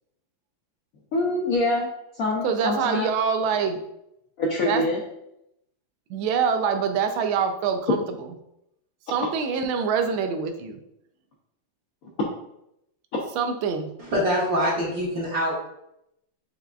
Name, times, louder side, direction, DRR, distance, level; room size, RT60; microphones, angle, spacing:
voice 1, 1.1-3.1 4.4-5.0 9.1-9.3 12.2-12.3 13.1-13.2, left 2 dB, 70° left, -3 dB, 0.8 m, -25 dB
voice 2, 2.4-3.8 4.6-4.8 6.1-8.0 9.1-10.7 13.4-13.9, right 6 dB, 90° right, 7 dB, 1.4 m, -25 dB
voice 3, 14.0-15.6, equal, 50° right, -6 dB, 1.6 m, -24 dB
5.8 x 3.5 x 2.3 m, 0.81 s
omnidirectional pair, 2.2 m